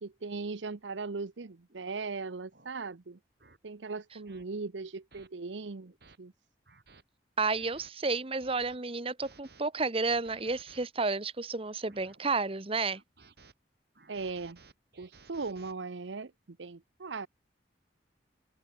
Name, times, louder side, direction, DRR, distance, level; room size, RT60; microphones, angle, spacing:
voice 1, 0.0-3.2 3.6-5.9 6.2-6.3 14.1-14.6 15.0-17.3, right 4 dB, 90° right, 0.8 m, -39 dB
sound 1, 1.7-1.9 2.5-2.7 3.4-3.6 4.3-4.4 5.1-5.3 5.8-6.2 6.7-7.0 7.5-7.9 8.4-8.8 9.2-9.6 10.1-10.9 11.5-12.2 12.9-13.5 13.9-15.7, right 4 dB, 60° right, 3.5 m, -58 dB
voice 2, 7.4-13.0, right 3 dB, 30° right, 1.2 m, -31 dB
head